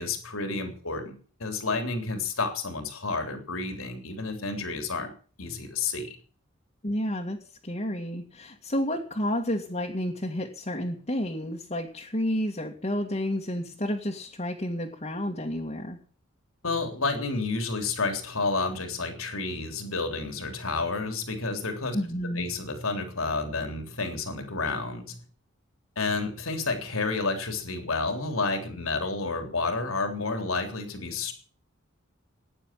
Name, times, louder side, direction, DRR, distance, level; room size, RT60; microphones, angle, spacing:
voice 1, 0.0-5.1 5.4-6.2 16.6-22.0 22.3-25.2 26.0-31.3, left 3 dB, 80° left, 6 dB, 3.6 m, -30 dB
voice 2, 6.8-16.0 21.9-22.5, equal, 30° left, -1 dB, 2.0 m, -30 dB
16.5 x 10.5 x 7.5 m, 0.43 s
head